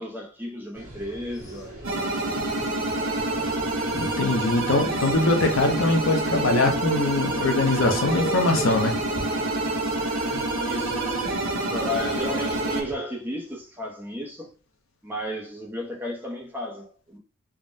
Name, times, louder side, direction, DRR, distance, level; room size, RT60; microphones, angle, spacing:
voice 1, 0.0-1.7 10.5-14.5 15.0-17.2, left 1 dB, 10° right, 0.6 m, -33 dB
sound 1, 0.7-12.9, right 1 dB, 45° right, 1.3 m, -41 dB
sound 2, 1.3-1.7 3.9-4.2 4.5-4.6 4.9-6.2 7.9-9.6 10.7-11.3, equal, 50° left, 1.2 m, -39 dB
sound 3, 1.8-12.8, right 2 dB, 60° right, 0.9 m, -27 dB
voice 2, 3.9-9.0 10.0-10.3, left 2 dB, 65° left, 0.6 m, -23 dB
3.5 x 2.1 x 2.5 m
head